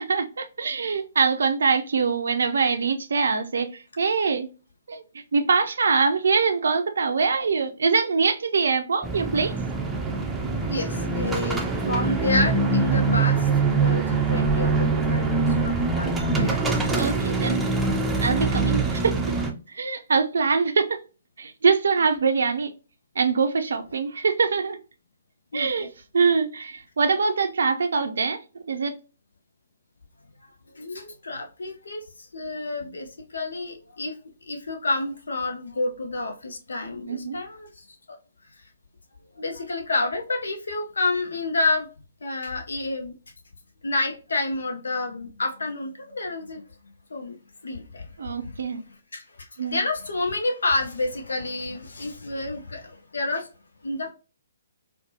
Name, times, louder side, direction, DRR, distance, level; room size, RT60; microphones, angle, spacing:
voice 1, 0.0-4.5 4.9-5.0 5.3-9.5 17.0-17.6 18.2-19.1 19.7-21.0 21.4-22.7 23.2-24.8 25.5-25.9 26.1-28.4 28.7-28.9 37.1-37.4 48.2-48.8 49.6-49.8, right 5 dB, 65° right, 0.4 m, -23 dB
sound 1, 9.0-19.5, right 3 dB, 10° right, 0.5 m, -23 dB
voice 2, 10.7-13.4 13.7-16.6 25.5-25.9 30.8-32.0 32.3-33.1 33.3-34.1 34.5-37.7 39.4-41.9 42.2-43.1 43.8-46.6 47.1-47.3 47.6-48.0 49.1-49.2 49.6-52.8 53.1-53.5 53.8-54.1, left 2 dB, 70° left, 0.6 m, -29 dB
4.2 x 2.1 x 2.7 m
figure-of-eight pair, 130°, 0 cm